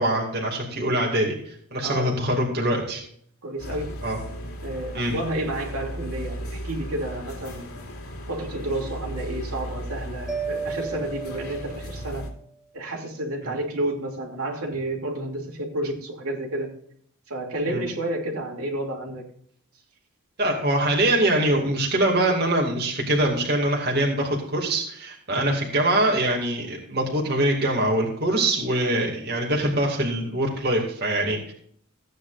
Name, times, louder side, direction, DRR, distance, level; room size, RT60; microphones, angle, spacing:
voice 1, 0.0-3.0 4.0-4.2 4.9-5.1 17.6-17.8 20.4-31.5, right 1 dB, 45° right, -1 dB, 2.4 m, -23 dB
voice 2, 1.8-2.2 3.4-4.0 4.6-7.8 8.3-12.3 12.7-16.7 17.3-19.2 25.3-25.6, right 1 dB, 75° right, -1 dB, 2.9 m, -31 dB
sound 1, 3.6-12.3, equal, 85° left, 2.7 m, -36 dB
Mallet percussion, 10.3-12.3, right 5 dB, ahead, 1.1 m, -33 dB
15.5 x 9.3 x 2.6 m, 0.64 s
head